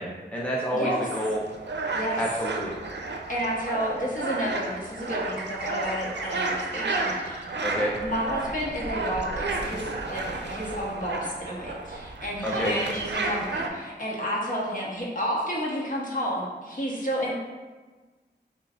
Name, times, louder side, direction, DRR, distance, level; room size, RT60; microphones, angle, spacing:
voice 1, 0.0-1.4 2.2-2.8 7.6-8.0 12.4-12.8, equal, 5° left, -4 dB, 0.7 m, -29 dB
sound 1, 1.1-13.7, right 2 dB, 80° right, 0.5 m, -32 dB
voice 2, 3.3-7.5 8.0-17.3, equal, 50° left, -5 dB, 1.2 m, -31 dB
6.3 x 2.5 x 2.5 m, 1.3 s
wide cardioid pair, 45°, 18 cm